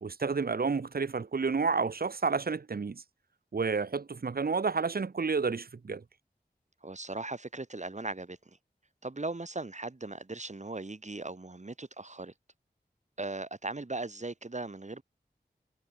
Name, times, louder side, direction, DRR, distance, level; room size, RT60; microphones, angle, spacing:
voice 1, 0.0-3.0 3.5-6.0, right 4 dB, 65° right, 0.8 m, -30 dB
voice 2, 6.8-8.4 9.0-12.3 13.2-15.0, right 2 dB, 45° right, 2.3 m, -38 dB
wide cardioid pair, 50°, 17 cm